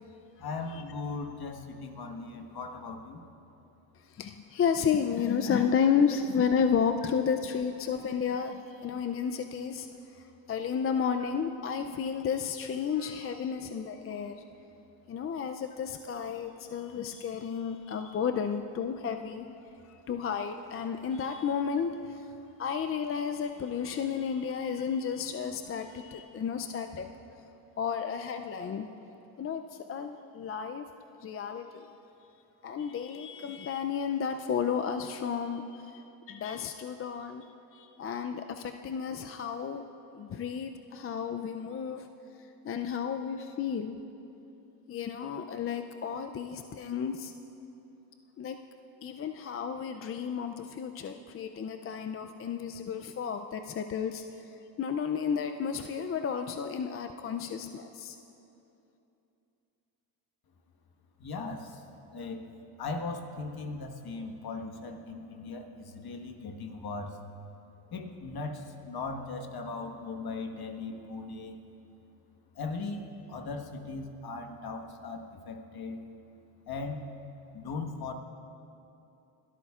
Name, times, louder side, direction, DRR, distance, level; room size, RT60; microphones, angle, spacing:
voice 1, 0.4-3.2 61.2-61.8 62.1-62.4 62.8-67.2 67.9-71.6 72.5-76.0 76.7-77.1 77.5-78.1, left 3 dB, 50° left, 5 dB, 1.4 m, -38 dB
voice 2, 4.0-14.4 15.1-19.5 19.9-22.3 22.6-27.1 27.8-28.9 29.4-30.9 31.2-31.9 32.6-37.5 37.7-39.8 40.1-42.1 42.6-44.0 44.9-47.3 48.4-48.6 49.0-54.5 54.8-58.2, left 7 dB, 30° left, 7 dB, 0.4 m, -32 dB
22.5 x 13.0 x 2.4 m, 2.9 s
cardioid pair, 85°, 49 cm